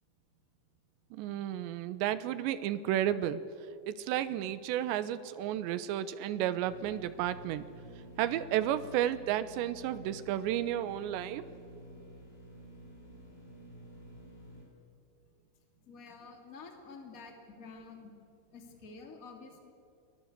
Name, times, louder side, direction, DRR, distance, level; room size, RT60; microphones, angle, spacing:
voice 1, 1.1-3.4 3.9-7.7 8.2-11.4, right 12 dB, 85° right, 13 dB, 3.2 m, -32 dB
sound 1, 6.6-14.6, equal, 50° left, 7.8 m, -51 dB
voice 2, 15.8-18.1 18.5-19.7, left 4 dB, 25° left, 3 dB, 2.7 m, -50 dB
30.0 x 21.5 x 8.2 m, 2.5 s
omnidirectional pair, 5.1 m